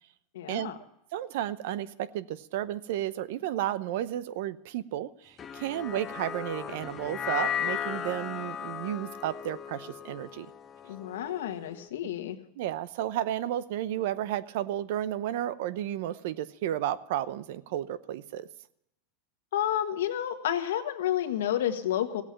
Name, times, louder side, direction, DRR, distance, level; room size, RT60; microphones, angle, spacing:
voice 1, 0.3-0.8 10.8-12.4 19.5-22.2, left 11 dB, 90° left, 7 dB, 1.6 m, -30 dB
voice 2, 1.1-10.5 12.6-18.5, right 12 dB, 65° right, 16 dB, 0.7 m, -32 dB
sound 1, 5.4-11.8, left 8 dB, 20° left, 0.9 m, -36 dB
16.0 x 8.3 x 8.7 m, 0.80 s
supercardioid pair, 145°, 0 cm